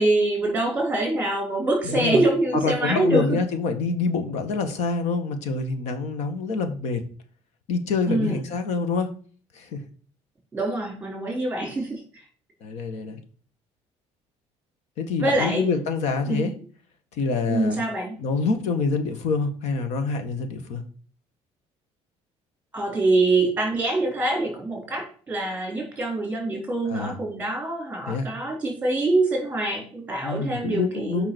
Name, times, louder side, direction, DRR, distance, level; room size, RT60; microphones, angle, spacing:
voice 1, 0.0-3.4 8.1-8.4 10.5-12.0 15.2-15.6 16.2-16.5 17.5-18.2 22.7-31.3, right 2 dB, 10° right, 1 dB, 4.3 m, -25 dB
voice 2, 1.8-2.2 2.6-7.0 7.7-9.1 9.6-9.8 12.6-13.2 15.0-16.5 17.2-17.8 18.2-20.8 26.9-27.2 28.1-28.3 30.2-31.3, left 4 dB, 70° left, 7 dB, 1.9 m, -26 dB
8.1 x 5.6 x 6.3 m, 0.42 s
cardioid pair, 155°, 12 cm